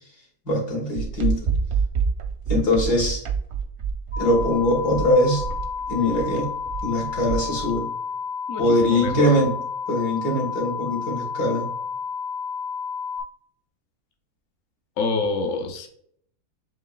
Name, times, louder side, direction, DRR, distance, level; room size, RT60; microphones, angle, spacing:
voice 1, 0.5-1.5 2.5-3.2 4.2-5.4 5.9-6.5 6.8-7.9 8.6-9.6 9.9-11.7, left 1 dB, 75° left, -2 dB, 2.1 m, -22 dB
sound 1, 0.9-7.8, right 6 dB, 65° right, 0.7 m, -27 dB
sound 2, 4.1-13.2, left 6 dB, 35° left, 0.6 m, -31 dB
voice 2, 8.5-9.3 15.0-15.9, left 3 dB, 60° left, 3 dB, 0.9 m, -26 dB
7.4 x 3.0 x 2.3 m, 0.65 s
omnidirectional pair, 1.7 m